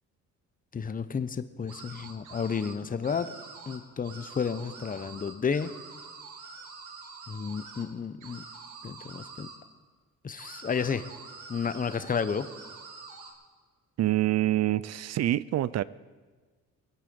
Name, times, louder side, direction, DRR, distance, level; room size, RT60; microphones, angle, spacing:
voice 1, 0.7-3.3 3.7-5.7 7.3-8.4 8.8-9.5 10.2-11.1 11.5-12.5, left 6 dB, 30° left, 12 dB, 0.8 m, -31 dB
sound 1, 1.7-2.7 3.0-3.8 4.0-7.8 8.2-9.6 10.4-13.3, right 4 dB, 85° right, 2.2 m, -46 dB
voice 2, 14.0-15.8, right 14 dB, 60° right, 19 dB, 0.5 m, -26 dB
23.0 x 9.0 x 5.3 m, 1.4 s
cardioid pair, 90°, 30 cm